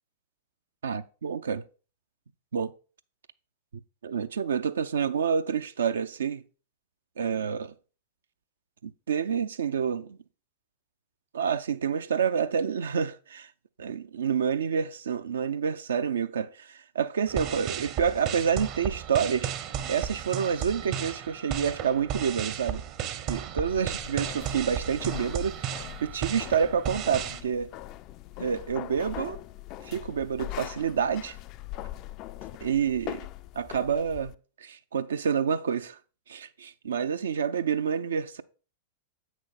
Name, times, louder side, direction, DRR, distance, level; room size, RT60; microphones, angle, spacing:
voice 1, 0.8-1.6 2.5-2.7 4.0-6.4 7.2-7.7 8.8-10.2 11.3-13.5 13.8-19.5 19.9-22.8 23.3-27.7 28.4-29.4 29.8-31.4 32.6-33.3 33.5-34.3 34.6-36.0 36.3-38.4, right 7 dB, 70° right, 0.5 m, -28 dB
sound 1, 17.3-27.4, right 9 dB, 45° right, 0.8 m, -34 dB
sound 2, 23.7-34.3, left 15 dB, 40° left, 0.3 m, -41 dB
8.0 x 6.1 x 4.1 m
figure-of-eight pair, 95°, 0 cm